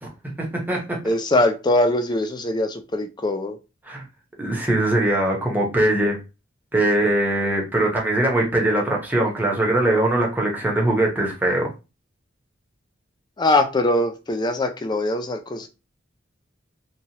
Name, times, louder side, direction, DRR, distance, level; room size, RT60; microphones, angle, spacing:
voice 1, 0.0-1.0 3.8-4.0 4.4-6.2 6.7-11.7, right 1 dB, 10° right, -2 dB, 0.8 m, -21 dB
voice 2, 1.0-3.6 13.4-15.7, left 1 dB, 20° left, 6 dB, 0.4 m, -22 dB
3.0 x 2.3 x 2.8 m, 0.29 s
head